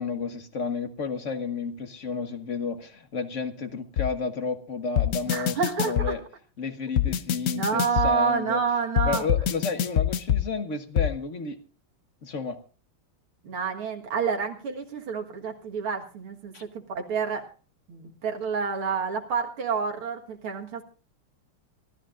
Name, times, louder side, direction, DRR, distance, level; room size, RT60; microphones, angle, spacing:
voice 1, 0.0-6.2 6.6-8.6 9.0-11.6 12.2-12.6 16.5-16.6, left 4 dB, 40° left, 9 dB, 1.3 m, -32 dB
sound 1, 4.0-4.1 5.0-6.1 7.0-8.1 9.0-10.4 11.0-11.1, left 10 dB, 60° left, 1.0 m, -24 dB
voice 2, 5.3-6.1 7.5-9.3 13.4-16.5 16.9-17.4 17.9-20.8, right 5 dB, 80° right, 2 dB, 2.5 m, -28 dB
26.0 x 13.5 x 2.5 m, 0.35 s
omnidirectional pair, 2.3 m